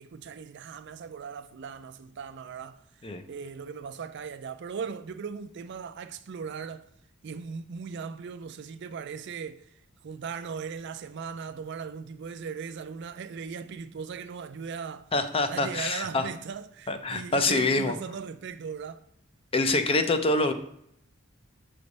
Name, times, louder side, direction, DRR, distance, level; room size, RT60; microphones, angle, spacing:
voice 1, 0.0-2.8 3.3-6.8 7.2-9.7 10.0-15.1 15.5-19.0, right 6 dB, 60° right, 0.4 m, -38 dB
voice 2, 15.1-16.3 16.9-17.9 19.5-20.5, left 3 dB, 30° left, 0.5 m, -25 dB
6.9 x 3.3 x 5.2 m
head